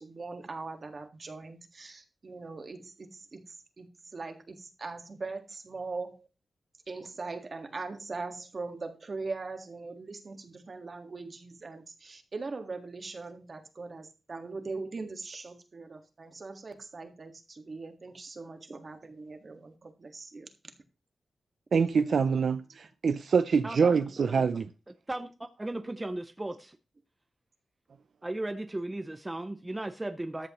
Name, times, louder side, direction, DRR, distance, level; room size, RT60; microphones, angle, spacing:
voice 1, 0.0-6.3 6.9-20.5 21.8-22.1 24.2-24.5 25.9-26.0, right 3 dB, 40° right, 1.6 m, -41 dB
voice 2, 21.7-24.7, right 5 dB, 70° right, 0.5 m, -25 dB
voice 3, 25.1-26.8 28.2-30.5, right 1 dB, 15° right, 0.5 m, -36 dB
14.0 x 10.0 x 3.0 m
wide cardioid pair, 170°, 0 cm